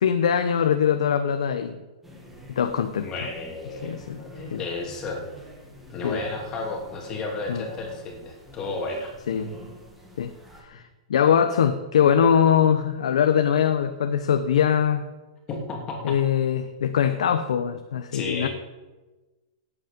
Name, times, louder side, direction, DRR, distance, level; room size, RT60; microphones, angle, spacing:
voice 1, 0.0-1.8 2.5-3.1 3.8-4.2 4.5-4.6 6.0-6.2 7.5-7.6 9.3-9.5 10.2-10.3 10.6-10.8 11.1-15.1 16.0-18.5, left 8 dB, 80° left, 8 dB, 0.9 m, -22 dB
sound 1, 2.0-10.6, equal, 5° right, 2.3 m, -46 dB
voice 2, 3.0-5.2 5.9-9.1 15.5-16.2 18.1-18.5, left 3 dB, 20° left, 0 dB, 2.8 m, -33 dB
17.0 x 8.5 x 5.3 m, 1.2 s
hypercardioid pair, 160°, 3 cm